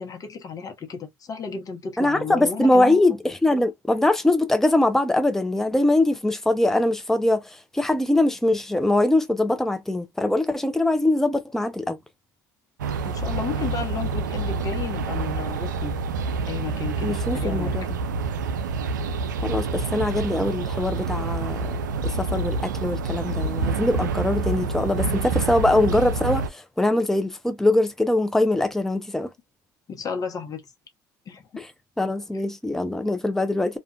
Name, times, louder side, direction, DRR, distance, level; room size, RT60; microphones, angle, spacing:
voice 1, 0.0-3.0 13.0-16.0 16.5-17.8 19.9-20.1 29.9-30.6 31.3-31.6, left 6 dB, 40° left, 1.0 m, -33 dB
voice 2, 2.0-12.0 17.0-17.9 19.4-21.6 22.0-29.3 31.6-31.7 32.0-33.8, left 2 dB, 5° left, 0.5 m, -22 dB
sound 1, 12.8-26.5, right 4 dB, 90° right, 0.4 m, -27 dB
2.4 x 2.4 x 2.3 m
hypercardioid pair, 70°, 10 cm